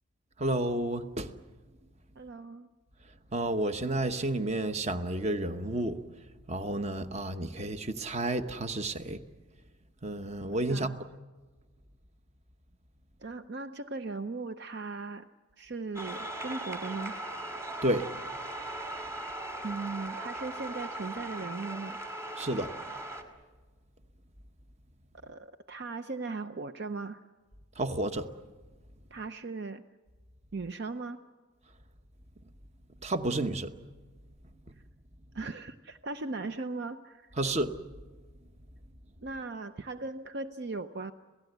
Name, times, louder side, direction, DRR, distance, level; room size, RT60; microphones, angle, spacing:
voice 1, 0.4-1.3 3.3-6.0 6.5-9.2 10.0-10.9 17.8-18.0 22.4-22.7 27.8-28.3 33.0-33.7 37.4-37.7, right 1 dB, 30° right, 9 dB, 1.0 m, -31 dB
voice 2, 2.2-2.7 10.7-11.0 13.2-15.3 15.6-17.2 19.6-22.0 25.2-27.2 29.1-29.8 30.5-31.2 35.3-37.3 39.2-41.1, right 3 dB, 50° right, 10 dB, 0.6 m, -38 dB
sound 1, 15.9-23.2, right 1 dB, 15° right, 2.3 m, -39 dB
27.5 x 17.0 x 8.1 m, 1.4 s
head